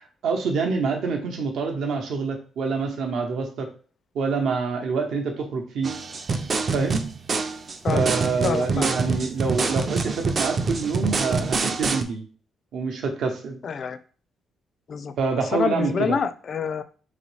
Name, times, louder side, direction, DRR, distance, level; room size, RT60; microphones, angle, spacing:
voice 1, 0.2-3.7 4.1-5.9 6.7-7.0 7.9-12.2 12.7-13.6 15.2-16.2, right 4 dB, 75° right, 3 dB, 0.8 m, -26 dB
sound 1, 5.8-12.0, right 4 dB, 35° right, 0.4 m, -26 dB
voice 2, 8.4-8.9 13.6-14.0 14.9-15.1 15.5-16.8, left 6 dB, 45° left, 11 dB, 0.4 m, -26 dB
4.1 x 3.0 x 3.2 m, 0.40 s
cardioid pair, 140°, 0 cm